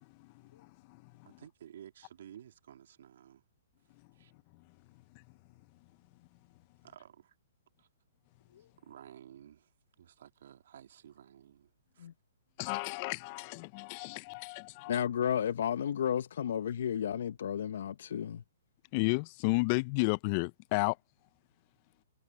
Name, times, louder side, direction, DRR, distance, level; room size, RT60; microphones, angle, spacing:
voice 1, 0.6-1.4 5.1-5.2 12.6-15.0 18.9-21.0, left 27 dB, 40° left, 0.5 m, -33 dB
voice 2, 1.2-3.4 4.2-4.3 6.8-7.3 7.8-7.9 8.8-9.7 10.0-11.7 12.0-12.1, right 10 dB, 65° right, 2.6 m, -53 dB
voice 3, 14.9-18.4, left 9 dB, 70° left, 1.0 m, -32 dB
hypercardioid pair, 135°, 0 cm